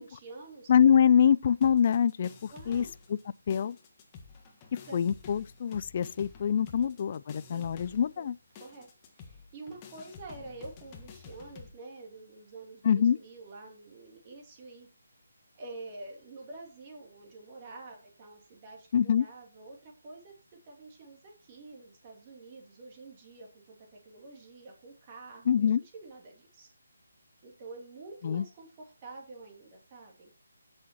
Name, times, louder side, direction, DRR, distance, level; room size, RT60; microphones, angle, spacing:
voice 1, 0.0-0.7 2.5-2.9 4.9-5.0 6.8-6.9 7.5-8.3 8.6-14.9 15.5-20.3 20.6-26.7 27.4-30.3, right 3 dB, 30° right, 2.9 m, -48 dB
voice 2, 0.7-2.8 3.1-3.2 3.5-3.8 4.9-8.3 12.8-13.2 18.9-19.3 25.5-25.8 28.2-28.4, left 8 dB, 40° left, 0.4 m, -24 dB
sound 1, 1.6-3.2 3.5-11.7, left 5 dB, 25° left, 1.6 m, -50 dB
16.0 x 6.4 x 3.0 m
figure-of-eight pair, 155°, 0 cm